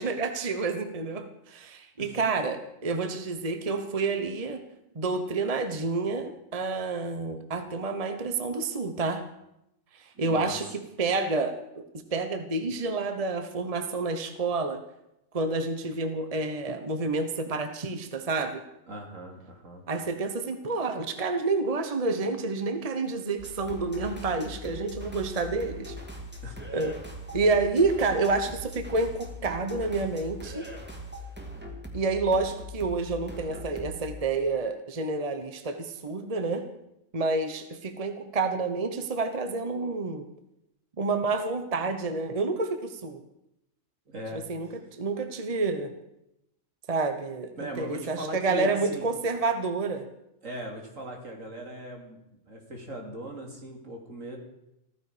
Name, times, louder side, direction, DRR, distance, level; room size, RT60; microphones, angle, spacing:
voice 1, 0.0-4.6 4.9-9.2 9.9-11.8 12.1-14.8 15.3-18.6 19.9-25.9 26.7-26.9 27.3-30.6 31.9-36.6 37.1-40.2 41.0-43.2 44.3-45.9 46.9-47.5 47.8-50.0, right 3 dB, 30° right, 8 dB, 1.1 m, -29 dB
voice 2, 10.1-10.6 18.9-19.8 26.4-26.6 44.1-44.4 47.5-49.1 50.4-52.2 52.5-54.4, right 1 dB, 70° right, 1 dB, 3.1 m, -39 dB
sound 1, 23.4-34.2, equal, 10° right, 2.1 m, -41 dB
15.0 x 14.5 x 5.1 m, 0.83 s
omnidirectional pair, 1.4 m